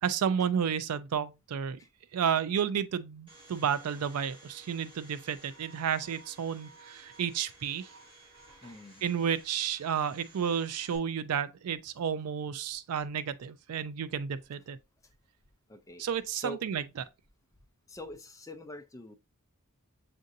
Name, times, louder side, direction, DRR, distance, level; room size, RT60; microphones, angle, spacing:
voice 1, 0.0-1.8 2.1-7.9 9.0-14.8 16.0-16.8, right 7 dB, 80° right, 0.4 m, -31 dB
Domestic sounds home sounds, 3.3-11.0, right 2 dB, 25° right, 2.3 m, -55 dB
voice 2, 8.6-9.0 15.7-16.0 16.4-16.6 17.9-19.1, left 1 dB, 15° left, 0.5 m, -44 dB
7.3 x 2.6 x 2.6 m
head